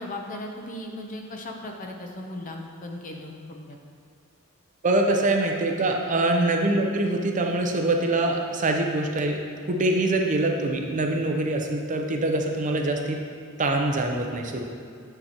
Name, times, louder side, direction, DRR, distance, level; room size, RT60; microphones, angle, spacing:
voice 1, 0.0-3.8 6.7-6.8, left 1 dB, 40° left, 2 dB, 0.7 m, -37 dB
voice 2, 4.8-9.4 9.7-13.2 13.6-14.7, right 2 dB, 35° right, 2 dB, 0.6 m, -24 dB
7.8 x 6.7 x 2.9 m, 2.4 s
head